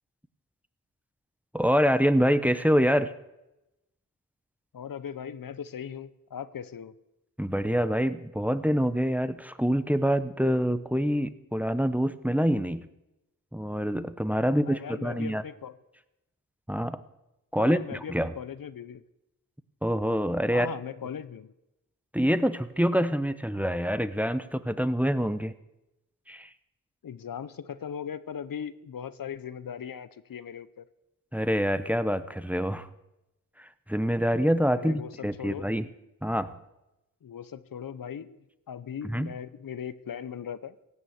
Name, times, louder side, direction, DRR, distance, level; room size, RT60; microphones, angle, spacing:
voice 1, 1.5-3.1 7.4-12.8 13.5-15.4 16.7-17.0 17.5-18.3 19.8-20.7 22.1-25.5 26.3-26.5 31.3-32.9 33.6-35.9 36.2-36.5 39.1-39.3, equal, 5° right, 13 dB, 0.8 m, -26 dB
voice 2, 4.7-6.9 14.5-15.8 17.6-19.0 20.5-21.5 27.0-30.9 34.7-35.7 37.2-38.4 38.7-40.8, left 8 dB, 80° left, 15 dB, 0.7 m, -39 dB
17.0 x 7.1 x 8.0 m, 0.92 s
cardioid pair, 55°, 34 cm